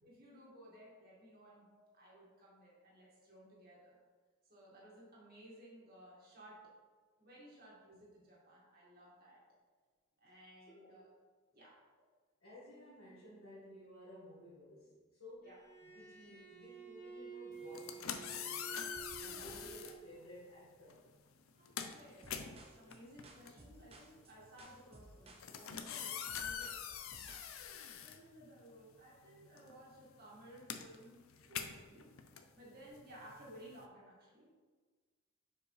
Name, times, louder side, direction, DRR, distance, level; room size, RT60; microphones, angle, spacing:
voice 1, 0.0-1.7 1.9-4.0 4.5-6.8 7.2-9.4 10.2-11.1 11.4-11.8 15.4-15.6 19.2-19.6 21.5-27.0 28.0-32.1 32.5-34.5, right 1 dB, 50° right, -6 dB, 2.0 m, -58 dB
voice 2, 10.7-11.0 12.4-18.9 19.2-21.1, equal, 65° left, -8 dB, 1.7 m, -55 dB
Bowed string instrument, 15.4-20.3, right 5 dB, 40° left, 1.5 m, -52 dB
sound 1, 17.6-20.0 20.9-21.1 21.4-28.9 29.2-33.8, left 8 dB, 85° left, 0.5 m, -45 dB
sound 2, 22.2-27.5, right 2 dB, 30° right, 0.7 m, -58 dB
7.0 x 5.0 x 3.3 m, 1.4 s
head